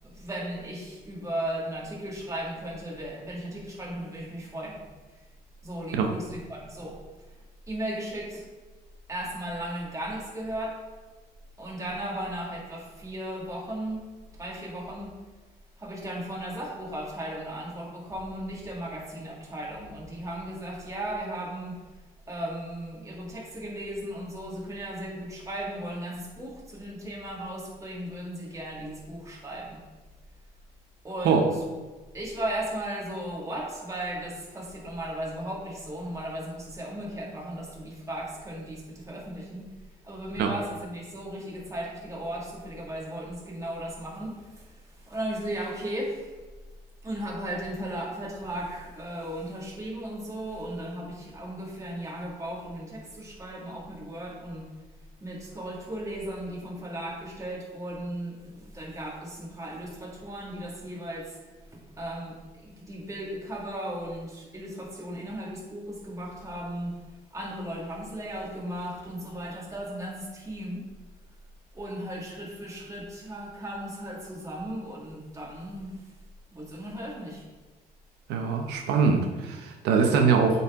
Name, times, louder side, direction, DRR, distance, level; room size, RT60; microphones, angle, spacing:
voice 1, 0.0-4.8 5.1-5.2 5.6-7.0 7.7-8.5 9.1-10.7 11.6-14.0 14.3-15.1 15.8-21.8 22.3-29.8 31.0-31.7 32.1-39.7 40.0-46.3 47.0-54.7 55.2-61.4 61.7-67.0 67.3-70.8 71.7-76.1 76.5-77.4, right 1 dB, 20° right, -3 dB, 2.0 m, -36 dB
voice 2, 78.3-80.6, right 5 dB, 85° right, 3 dB, 0.7 m, -23 dB
8.2 x 4.1 x 3.6 m, 1.3 s
cardioid pair, 110°, 17 cm